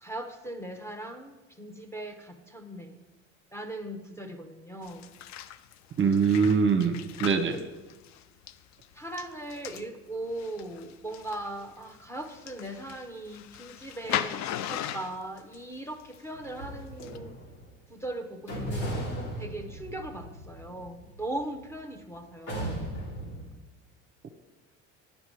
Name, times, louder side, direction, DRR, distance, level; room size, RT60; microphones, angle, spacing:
voice 1, 0.0-3.1 3.5-5.1 8.9-17.4 17.9-19.0 19.4-22.9, right 1 dB, 5° left, 5 dB, 0.8 m, -39 dB
sound 1, 4.8-9.9 10.3-16.5 16.7-17.2, left 11 dB, 50° left, 0.5 m, -38 dB
voice 2, 6.0-7.6, right 5 dB, 35° right, 8 dB, 0.8 m, -23 dB
sound 2, 16.3-17.7 18.5-21.9 22.5-23.4, right 1 dB, 80° left, 2.6 m, -37 dB
9.4 x 5.4 x 4.5 m, 1.1 s
hypercardioid pair, 65°, 36 cm